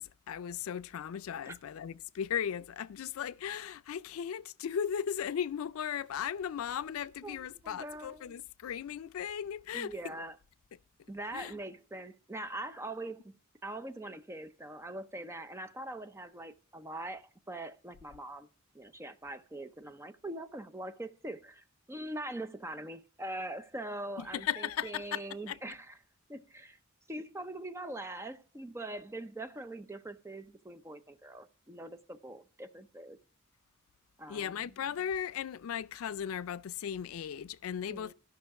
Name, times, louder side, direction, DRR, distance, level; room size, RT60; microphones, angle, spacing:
voice 1, 0.0-10.2 11.3-11.6 24.2-25.2 25.5-25.6 34.3-38.1, left 8 dB, 85° left, 0.4 m, -37 dB
voice 2, 7.2-8.3 9.7-10.4 11.1-13.4 13.6-18.5 18.7-26.0 26.3-26.8 27.1-33.2 34.2-34.8 37.9-38.1, right 1 dB, 15° right, 0.6 m, -42 dB
13.0 x 5.8 x 4.7 m
head